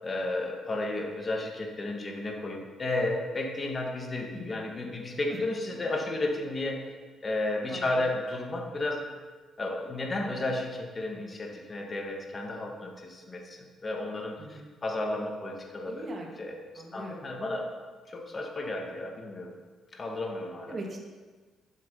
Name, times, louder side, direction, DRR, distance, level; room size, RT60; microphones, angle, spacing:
voice 1, 0.0-6.9 7.2-9.0 9.6-16.1 16.4-17.7 18.1-19.5 19.9-20.8, left 2 dB, 30° left, 1 dB, 2.1 m, -33 dB
voice 2, 4.3-4.6 5.3-5.4 7.7-8.0 14.4-14.7 15.8-16.3 16.7-17.2 20.7-21.0, right 1 dB, 35° right, -1 dB, 2.4 m, -41 dB
11.5 x 7.5 x 5.6 m, 1.4 s
cardioid pair, 90°, 0 cm